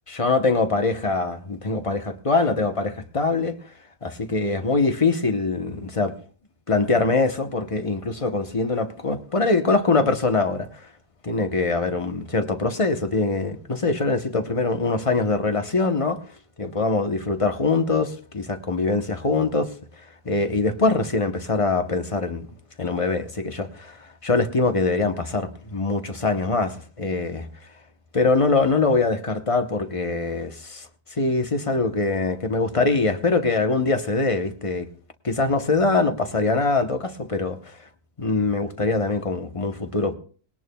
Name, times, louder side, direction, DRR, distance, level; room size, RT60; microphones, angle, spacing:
voice 1, 0.1-3.5 4.0-6.1 6.7-10.9 11.2-16.2 16.6-19.7 20.0-22.5 22.8-27.5 28.1-34.9 35.2-37.8 38.2-40.1, left 3 dB, 30° left, 0.7 m, -23 dB
20.0 x 18.0 x 2.3 m
omnidirectional pair, 1.7 m